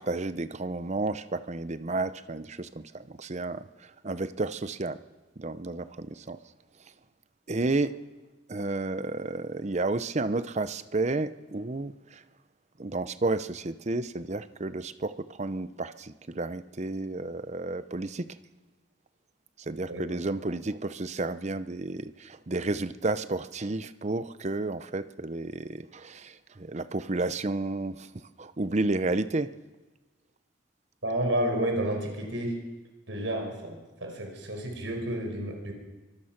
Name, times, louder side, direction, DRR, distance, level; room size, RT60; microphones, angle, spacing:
voice 1, 0.0-3.6 4.0-5.0 5.4-6.4 7.5-8.0 8.5-11.9 12.8-18.3 19.7-28.1 28.4-29.5, right 2 dB, 35° right, 13 dB, 0.7 m, -31 dB
voice 2, 19.9-20.2 31.0-32.6 33.1-35.7, right 1 dB, 85° right, 3 dB, 4.8 m, -31 dB
24.0 x 19.5 x 6.0 m, 1.2 s
head